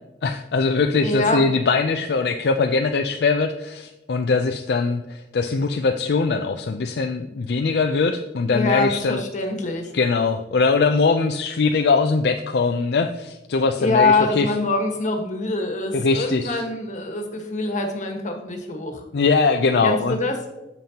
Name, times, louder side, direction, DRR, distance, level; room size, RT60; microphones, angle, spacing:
voice 1, 0.2-9.2 9.9-14.5 15.9-16.6 19.1-20.2, left 4 dB, 65° left, 5 dB, 0.4 m, -21 dB
voice 2, 1.0-1.4 8.5-9.9 13.8-19.0 19.8-20.4, left 2 dB, 45° left, 3 dB, 1.4 m, -24 dB
9.2 x 6.9 x 2.9 m, 0.99 s
head